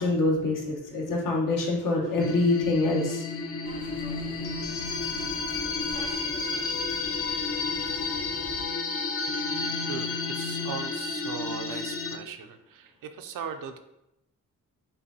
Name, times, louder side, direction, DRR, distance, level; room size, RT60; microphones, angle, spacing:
voice 1, 0.0-3.2 6.3-6.6 7.3-7.4 8.0-8.1, left 2 dB, 75° left, -2 dB, 1.1 m, -26 dB
sound 1, 2.2-12.2, left 4 dB, 45° left, 0.5 m, -31 dB
sound 2, 3.6-8.7, right 2 dB, 15° right, 0.5 m, -45 dB
voice 2, 9.9-13.8, right 7 dB, 80° right, 8 dB, 0.5 m, -38 dB
5.4 x 2.6 x 2.7 m, 0.84 s
cardioid pair, 85°, 33 cm